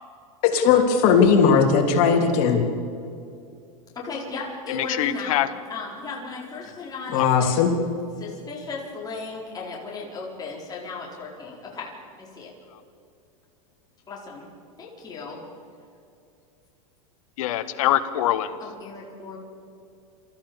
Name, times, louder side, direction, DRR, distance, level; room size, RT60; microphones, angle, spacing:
voice 1, 0.4-2.6 7.1-7.7, left 6 dB, 55° left, 3 dB, 3.3 m, -18 dB
voice 2, 3.9-5.4 5.7-7.6 8.2-11.9 12.2-12.5 14.1-14.5 14.8-15.4 18.6-19.4, left 4 dB, 20° left, -4 dB, 4.6 m, -36 dB
voice 3, 4.7-5.5 7.2-7.3 12.7-12.8 17.4-18.6, left 13 dB, 70° left, 12 dB, 1.4 m, -24 dB
27.5 x 14.5 x 7.2 m, 2.5 s
supercardioid pair, 125°, 18 cm